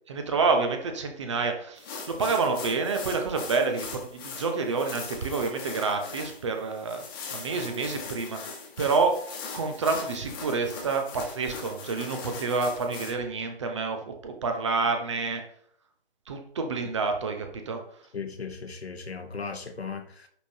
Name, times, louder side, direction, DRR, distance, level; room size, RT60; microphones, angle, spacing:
voice 1, 0.1-7.0 7.3-9.2 9.5-15.4 16.3-17.8, right 4 dB, 30° right, 5 dB, 0.7 m, -28 dB
sound 1, 1.8-13.1, left 5 dB, 20° left, 1.2 m, -41 dB
voice 2, 18.1-20.3, left 5 dB, 75° left, 6 dB, 1.1 m, -37 dB
10.0 x 3.6 x 2.7 m, 0.63 s
figure-of-eight pair, 140°, 31 cm